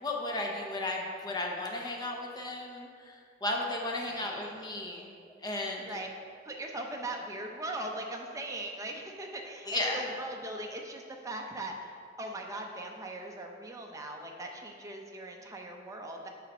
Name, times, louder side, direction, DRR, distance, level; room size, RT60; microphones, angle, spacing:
voice 1, 0.0-5.1 5.4-6.0 9.7-10.0, left 2 dB, 20° left, 0 dB, 0.8 m, -34 dB
voice 2, 4.1-4.5 5.8-6.1 6.4-16.3, right 1 dB, 15° right, 1 dB, 0.6 m, -40 dB
6.6 x 4.1 x 5.4 m, 2.2 s
head